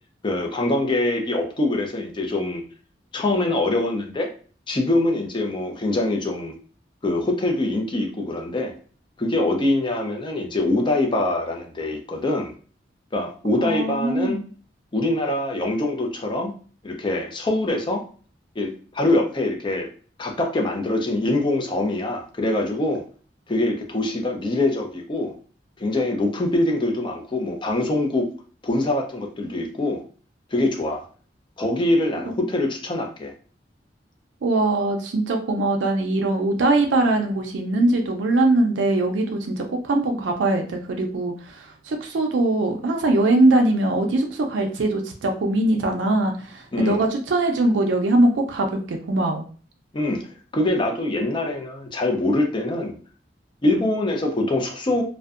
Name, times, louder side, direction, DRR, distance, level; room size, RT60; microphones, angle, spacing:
voice 1, 0.2-2.6 3.1-4.3 4.7-6.6 7.0-8.7 9.2-12.5 13.1-14.4 14.9-16.5 16.8-18.0 18.6-19.9 20.2-23.0 23.5-25.3 25.8-28.3 28.6-30.0 30.5-31.0 31.6-33.3 46.7-47.0 49.9-50.2 50.5-53.0 53.6-55.0, left 2 dB, 25° left, 2 dB, 0.4 m, -24 dB
voice 2, 13.6-14.4 32.3-32.4 34.4-49.5, right 2 dB, 80° right, 3 dB, 0.4 m, -21 dB
2.5 x 2.1 x 2.4 m, 0.41 s
head